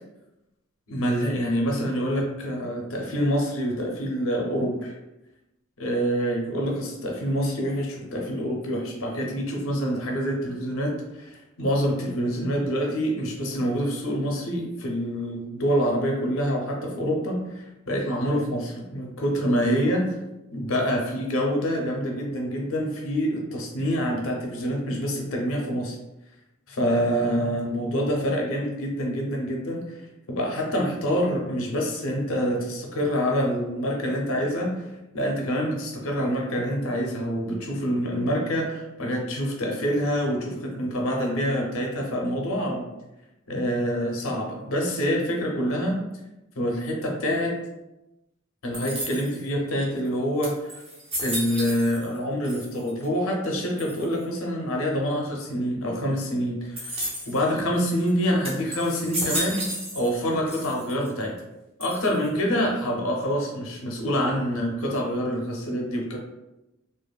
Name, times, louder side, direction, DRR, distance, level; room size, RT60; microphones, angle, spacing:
voice 1, 0.9-4.9 5.8-20.1 20.5-26.0 26.7-30.0 30.3-42.8 43.5-46.0 46.6-47.6 48.6-50.8 51.2-56.9 57.3-59.6 59.9-61.4 61.8-66.2, equal, 70° left, 0 dB, 0.6 m, -26 dB
sound 1, 48.7-49.5 50.1-50.2 50.4-52.2 52.4-53.1 53.8-54.2 56.8-57.4 58.0-58.1 58.4-60.2 60.5-61.1 61.8-62.4, equal, 30° right, 0.7 m, -33 dB
2.8 x 2.5 x 2.3 m, 0.96 s
head